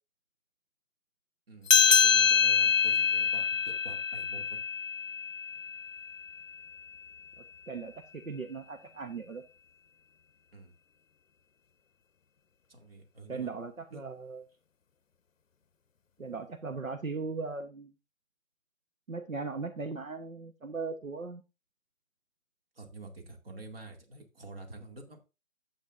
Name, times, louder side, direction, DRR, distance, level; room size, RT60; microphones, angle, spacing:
voice 1, 1.5-4.6 10.5-10.7 12.7-13.5 13.9-14.0 22.7-25.3, right 2 dB, 45° right, 4 dB, 2.5 m, -48 dB
sound 1, 1.7-6.6, left 7 dB, 70° left, 0.7 m, -25 dB
voice 2, 7.4-9.4 13.3-14.4 16.2-17.9 19.1-21.4, right 4 dB, 75° right, 7 dB, 1.2 m, -38 dB
11.5 x 8.4 x 2.6 m, 0.28 s
figure-of-eight pair, 145°, 41 cm